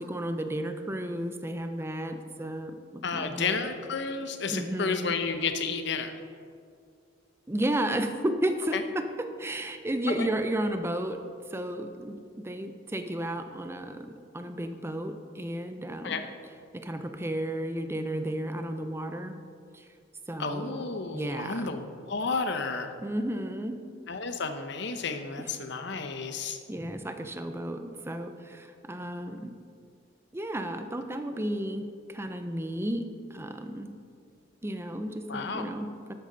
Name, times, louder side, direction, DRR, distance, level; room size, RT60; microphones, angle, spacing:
voice 1, 0.0-3.6 4.5-5.2 7.5-11.2 11.5-16.2 16.7-19.3 19.7-19.9 20.3-20.9 21.1-21.8 23.0-23.8 25.4-25.5 26.3-29.5 30.3-33.9 34.6-36.1, right 1 dB, 15° right, 7 dB, 0.5 m, -33 dB
voice 2, 3.0-6.2 8.7-8.8 10.1-10.3 16.0-16.2 20.4-22.9 24.1-26.6 35.3-35.6, left 4 dB, 65° left, 8 dB, 0.8 m, -32 dB
12.0 x 8.4 x 3.9 m, 2.2 s
head